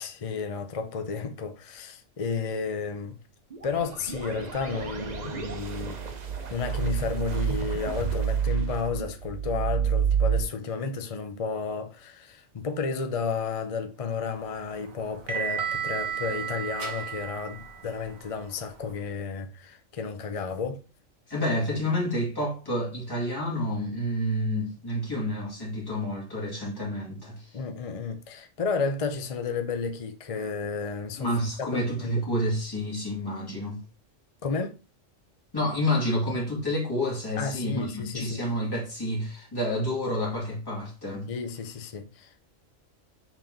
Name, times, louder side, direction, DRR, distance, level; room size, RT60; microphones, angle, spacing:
voice 1, 0.0-3.2 3.6-6.0 6.5-20.8 27.5-31.3 31.6-32.2 34.4-34.8 37.4-38.4 41.3-42.4, left 5 dB, 35° left, 0.6 m, -32 dB
sound 1, 3.5-10.4, right 8 dB, 40° right, 0.7 m, -29 dB
sound 2, 14.2-19.0, right 7 dB, 90° right, 1.9 m, -34 dB
voice 2, 21.3-27.6 31.2-33.8 35.5-41.3, equal, 15° left, 2.4 m, -29 dB
5.9 x 4.3 x 3.9 m
omnidirectional pair, 1.4 m